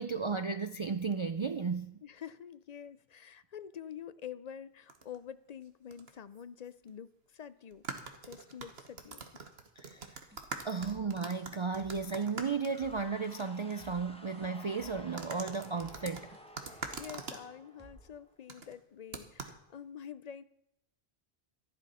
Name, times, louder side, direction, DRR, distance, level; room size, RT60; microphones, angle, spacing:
voice 1, 0.0-2.0 9.8-10.1 10.6-16.4, right 5 dB, 45° right, 0.4 m, -34 dB
voice 2, 2.0-7.8 8.2-9.5 10.7-10.9 16.6-20.4, left 8 dB, 50° left, 0.5 m, -47 dB
sound 1, 4.9-5.2 5.9-6.1 6.4-6.5 7.7-13.4 13.7-13.8 15.2-17.4 18.5-18.7 19.1-19.6, right 4 dB, 75° right, 1.5 m, -44 dB
sound 2, 10.3-18.2, right 1 dB, 10° right, 1.9 m, -58 dB
sound 3, 12.7-18.4, equal, 5° left, 1.1 m, -54 dB
13.5 x 11.0 x 5.6 m
omnidirectional pair, 1.0 m